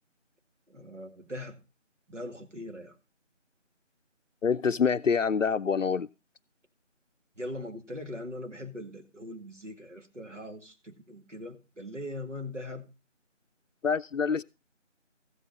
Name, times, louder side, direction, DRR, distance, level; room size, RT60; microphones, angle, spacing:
voice 1, 0.7-1.6 2.1-3.0 7.4-12.8, left 1 dB, 70° right, 2.2 m, -40 dB
voice 2, 4.4-6.1 13.8-14.4, left 6 dB, 80° left, 0.5 m, -26 dB
14.5 x 8.2 x 4.2 m
figure-of-eight pair, 175°, 38 cm